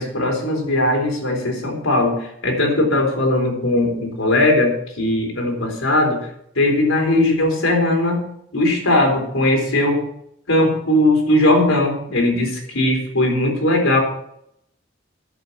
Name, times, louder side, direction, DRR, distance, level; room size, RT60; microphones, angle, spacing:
voice 1, 0.0-6.3 6.6-8.3 8.5-10.0 10.5-14.0, left 1 dB, 85° left, 2 dB, 3.9 m, -19 dB
11.0 x 8.0 x 7.2 m, 0.73 s
head